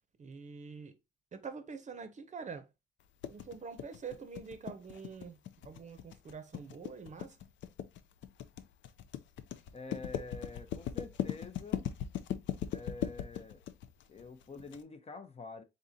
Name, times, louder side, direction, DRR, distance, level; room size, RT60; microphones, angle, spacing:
voice 1, 0.2-1.0 1.3-2.7 3.3-7.4, right 5 dB, 40° right, 0.7 m, -45 dB
sound 1, 3.2-14.8, left 10 dB, 70° left, 0.5 m, -39 dB
voice 2, 9.7-11.9 12.7-13.6 14.1-15.6, left 3 dB, 30° left, 0.6 m, -47 dB
3.7 x 3.6 x 2.7 m
cardioid pair, 90°, 20 cm